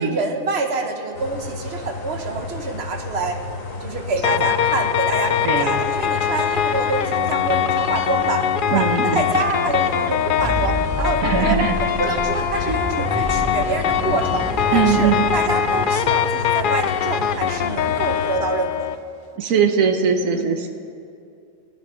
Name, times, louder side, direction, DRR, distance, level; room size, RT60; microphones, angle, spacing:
voice 1, 0.0-3.4 3.8-11.6 12.0-18.9 20.3-20.6, right 4 dB, 55° right, 4 dB, 1.2 m, -27 dB
sound 1, 1.1-18.3, left 3 dB, 85° left, 1.7 m, -33 dB
sound 2, 4.2-19.0, left 9 dB, 65° left, 0.5 m, -22 dB
voice 2, 5.4-5.8 8.7-9.3 11.2-11.7 12.6-13.1 14.7-15.3 19.4-20.7, right 6 dB, 85° right, 6 dB, 1.3 m, -21 dB
sound 3, 10.4-16.6, right 1 dB, 5° right, 0.5 m, -30 dB
15.5 x 11.0 x 4.9 m, 2.4 s
omnidirectional pair, 1.4 m